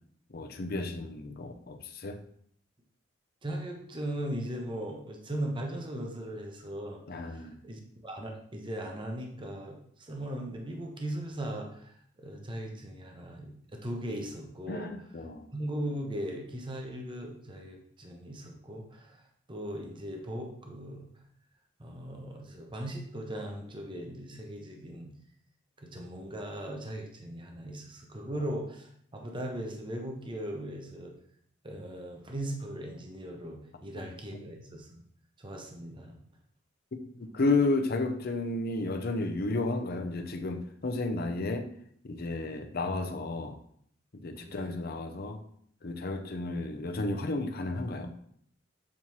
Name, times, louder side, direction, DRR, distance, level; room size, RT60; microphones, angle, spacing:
voice 1, 0.3-2.2 7.1-7.6 14.7-15.5 28.3-28.4 33.9-34.4 37.3-41.7 42.0-43.6 44.2-45.4 45.8-48.1, left 2 dB, 50° left, 6 dB, 0.6 m, -32 dB
voice 2, 3.4-14.9 15.5-19.2 19.5-21.0 21.8-25.1 25.8-31.1 31.6-35.0 35.4-36.2 44.4-44.8, right 1 dB, 25° right, 2 dB, 0.8 m, -38 dB
7.3 x 4.3 x 3.1 m, 0.65 s
head